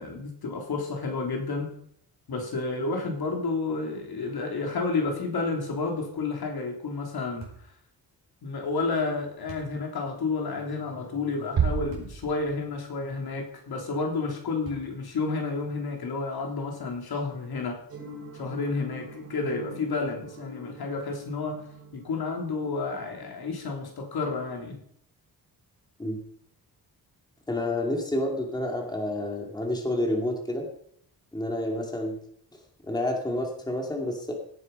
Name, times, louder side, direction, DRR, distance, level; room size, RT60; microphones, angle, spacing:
voice 1, 0.0-1.7 2.3-7.5 8.4-17.8 18.3-21.6 21.9-24.8, left 3 dB, 70° left, 2 dB, 3.3 m, -31 dB
sound 1, 7.4-7.7 9.5-9.8 11.9-12.2 12.8-12.9 14.6-15.1, right 6 dB, 55° right, 5.1 m, -45 dB
sound 2, 11.6-13.0, right 7 dB, 80° right, 2.1 m, -29 dB
sound 3, 17.9-24.1, right 1 dB, 40° right, 3.4 m, -45 dB
voice 2, 27.5-30.6 31.3-32.2 32.8-34.3, left 1 dB, 10° left, 1 dB, 2.4 m, -29 dB
17.0 x 9.7 x 5.5 m, 0.68 s
wide cardioid pair, 165°, 39 cm